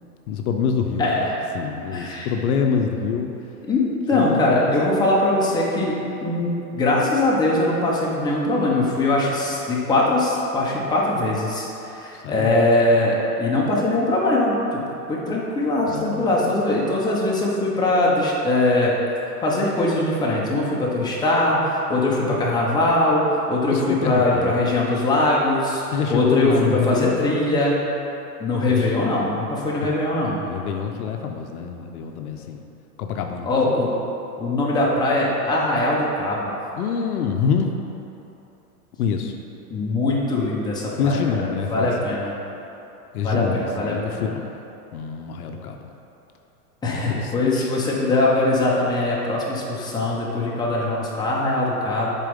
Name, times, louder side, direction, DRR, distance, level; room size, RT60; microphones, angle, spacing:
voice 1, 0.3-1.1 1.5-3.3 4.1-4.4 12.1-12.5 15.9-16.3 22.3-22.4 23.7-24.6 25.9-27.2 28.7-28.9 29.8-29.9 30.4-32.6 33.0-33.7 36.8-37.7 39.0-39.3 41.0-42.1 43.1-44.5 44.9-45.9 46.9-47.7, left 6 dB, 70° left, 4 dB, 0.7 m, -26 dB
voice 2, 1.0-1.4 1.9-2.3 3.7-14.8 15.1-18.9 19.4-27.9 28.4-30.4 33.4-33.9 34.4-36.5 39.7-42.3 43.2-44.3 46.8-52.1, left 2 dB, 10° left, -5 dB, 0.9 m, -21 dB
7.3 x 4.1 x 3.6 m, 3.0 s
hypercardioid pair, 120°, 46 cm